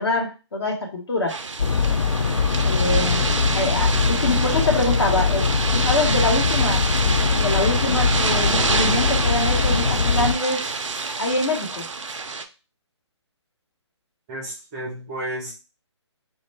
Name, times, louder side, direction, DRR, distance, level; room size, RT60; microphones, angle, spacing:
voice 1, 0.0-1.3 2.6-3.2 3.5-5.4 5.7-10.6 11.2-11.8, left 2 dB, 55° left, 2 dB, 0.9 m, -25 dB
sound 1, 1.3-12.4, right 4 dB, 90° right, 0.4 m, -27 dB
sound 2, 1.6-10.4, left 5 dB, 85° left, 0.4 m, -22 dB
voice 2, 14.3-15.5, right 1 dB, 15° right, -3 dB, 0.4 m, -32 dB
2.3 x 2.2 x 3.2 m, 0.32 s
figure-of-eight pair, 145°, 15 cm